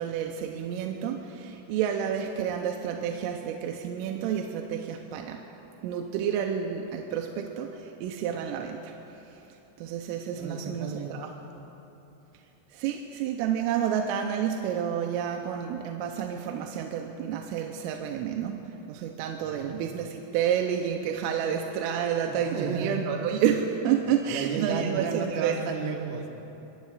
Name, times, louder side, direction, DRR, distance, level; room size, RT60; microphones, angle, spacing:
voice 1, 0.0-5.4 5.8-11.3 12.7-25.6, right 8 dB, 85° right, 2 dB, 3.2 m, -30 dB
voice 2, 10.4-11.2 19.4-19.8 22.3-23.0 24.1-26.3, right 5 dB, 70° right, 1 dB, 3.0 m, -33 dB
24.5 x 23.5 x 2.5 m, 3.0 s
omnidirectional pair, 5.8 m